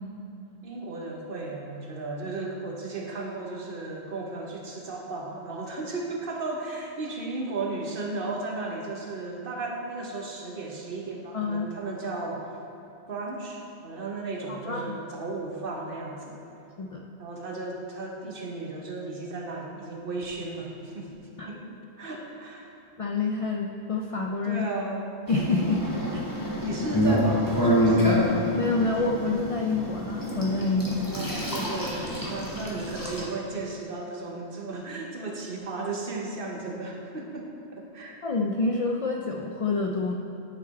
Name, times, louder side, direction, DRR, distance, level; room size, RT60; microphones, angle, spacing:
voice 1, 0.6-12.4 13.1-16.4 17.2-21.1 21.5-22.7 24.4-25.1 26.6-28.2 31.1-38.2, right 3 dB, 60° right, 0 dB, 1.1 m, -35 dB
voice 2, 11.3-11.7 14.5-15.0 16.8-17.0 21.4-21.5 23.0-24.6 25.3-25.9 26.1-26.2 28.5-31.1 38.2-40.1, left 3 dB, 55° left, 1 dB, 0.4 m, -27 dB
sound 1, 25.3-33.2, equal, 20° left, 1.2 m, -27 dB
9.8 x 5.1 x 4.1 m, 2.9 s
omnidirectional pair, 1.1 m